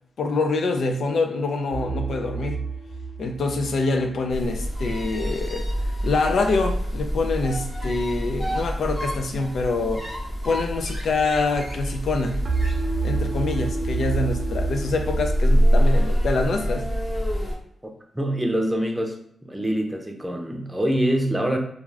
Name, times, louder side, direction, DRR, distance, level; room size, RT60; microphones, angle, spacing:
voice 1, 0.2-2.6 3.2-5.7 6.0-10.1 10.4-12.4 13.0-16.9, left 3 dB, 75° left, 5 dB, 0.4 m, -25 dB
sound 1, 1.7-4.8 12.4-16.4, right 4 dB, 60° right, 0.6 m, -30 dB
sound 2, 4.3-17.5, equal, 35° left, 0.9 m, -26 dB
voice 2, 18.1-19.2 19.4-21.6, right 1 dB, 10° right, 2 dB, 0.6 m, -24 dB
2.4 x 2.4 x 3.2 m, 0.73 s
cardioid pair, 65°, 0 cm